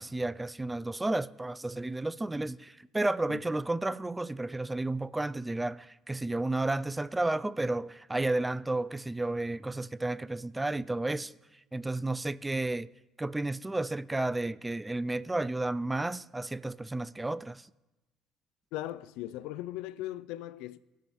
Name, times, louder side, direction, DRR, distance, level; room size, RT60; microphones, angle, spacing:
voice 1, 0.0-11.3 11.7-12.9 13.2-17.7, right 2 dB, 15° right, 0.3 m, -32 dB
voice 2, 18.7-20.8, left 15 dB, 80° left, 0.3 m, -38 dB
17.5 x 6.9 x 3.1 m
supercardioid pair, 85°, 0 cm